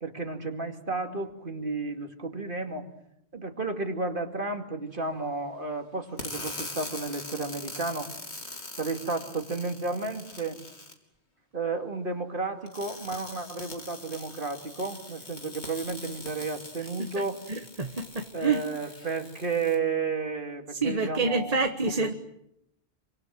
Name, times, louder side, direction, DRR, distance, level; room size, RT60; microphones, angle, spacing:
voice 1, 0.0-2.9 3.3-8.1 8.8-10.6 11.5-17.4 18.3-22.1, right 3 dB, 50° right, 2.7 m, -32 dB
sound 1, 6.2-10.9 12.7-19.7, left 2 dB, 80° left, 3.6 m, -42 dB
voice 2, 17.5-18.6 20.8-22.1, right 4 dB, 35° right, 1.4 m, -27 dB
28.0 x 25.0 x 7.7 m
omnidirectional pair, 1.1 m